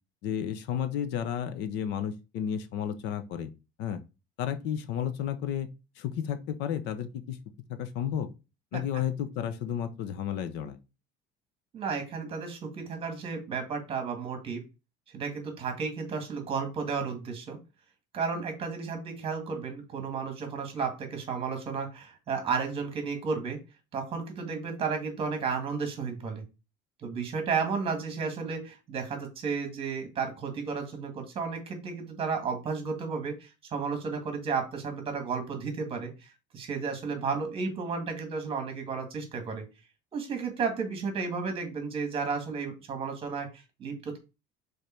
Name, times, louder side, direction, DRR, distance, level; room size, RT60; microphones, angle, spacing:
voice 1, 0.2-3.5 3.8-4.0 4.4-5.7 6.0-7.4 7.7-8.3 8.7-10.8, left 9 dB, 65° left, 11 dB, 0.8 m, -32 dB
voice 2, 11.7-14.6 15.1-17.6 18.1-23.6 23.9-26.4 27.0-39.6 40.1-44.2, right 5 dB, 30° right, 5 dB, 1.8 m, -33 dB
5.1 x 4.1 x 4.4 m, 0.28 s
cardioid pair, 170°, 19 cm